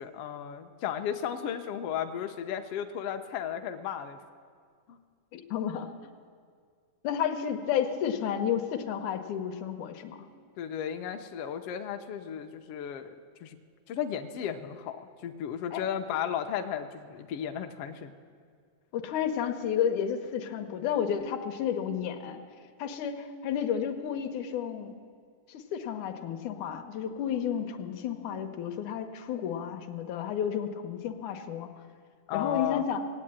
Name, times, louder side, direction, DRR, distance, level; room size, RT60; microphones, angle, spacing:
voice 1, 0.0-4.2 4.9-5.0 10.6-13.1 13.4-13.6 13.9-18.1 32.3-32.9, left 9 dB, 75° left, 6 dB, 1.4 m, -34 dB
voice 2, 5.3-5.9 7.0-10.3 15.7-15.8 18.9-22.4 22.8-24.9 25.5-31.7 32.3-33.0, left 8 dB, 90° left, 5 dB, 2.3 m, -31 dB
18.0 x 8.6 x 8.8 m, 2.1 s
omnidirectional pair, 3.4 m